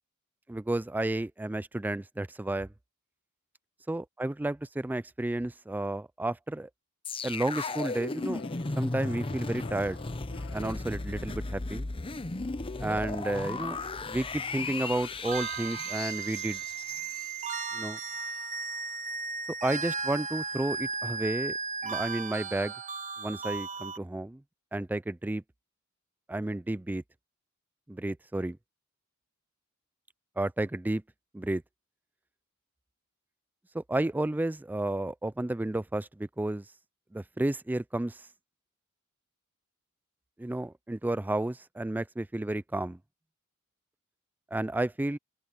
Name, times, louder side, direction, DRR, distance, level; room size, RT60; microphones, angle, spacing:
voice 1, 0.5-2.7 3.9-6.7 7.2-8.4 8.8-10.0 10.5-11.9 12.8-13.8 14.1-16.6 17.7-18.0 19.6-21.5 21.8-22.7 23.2-24.4 24.7-25.4 26.3-27.0 27.9-28.6 30.4-31.0 31.3-31.6 33.7-36.7 37.1-38.3 40.4-43.0 44.5-45.2, right 1 dB, 10° right, 0.3 m, -32 dB
sound 1, 7.0-18.2 18.6-18.7, left 3 dB, 25° left, 0.7 m, -36 dB
sound 2, 8.2-11.7, left 5 dB, 55° left, 1.2 m, -50 dB
sound 3, 15.2-24.0, right 5 dB, 35° right, 1.3 m, -35 dB
open air
head